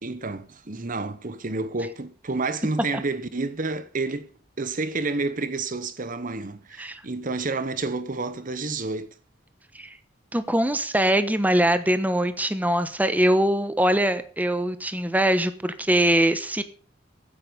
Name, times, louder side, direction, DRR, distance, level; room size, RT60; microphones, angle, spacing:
voice 1, 0.0-4.3 4.6-9.1, right 3 dB, 45° right, 1.0 m, -29 dB
voice 2, 10.3-16.6, right 1 dB, 10° right, 1.1 m, -22 dB
15.5 x 9.1 x 5.2 m
head